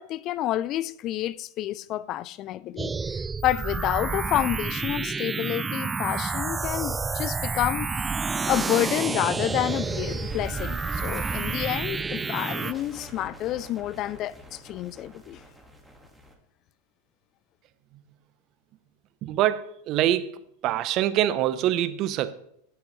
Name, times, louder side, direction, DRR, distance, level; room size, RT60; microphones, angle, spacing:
voice 1, 0.0-7.9 8.5-15.4, left 13 dB, 45° left, 0.4 m, -29 dB
sound 1, 2.8-12.7, right 4 dB, 20° right, 0.3 m, -29 dB
sound 2, 8.7-16.3, equal, ahead, 1.9 m, -43 dB
voice 2, 19.2-20.4 20.6-22.3, right 12 dB, 45° right, 0.9 m, -24 dB
17.0 x 6.9 x 3.3 m
hypercardioid pair, 100°, 0 cm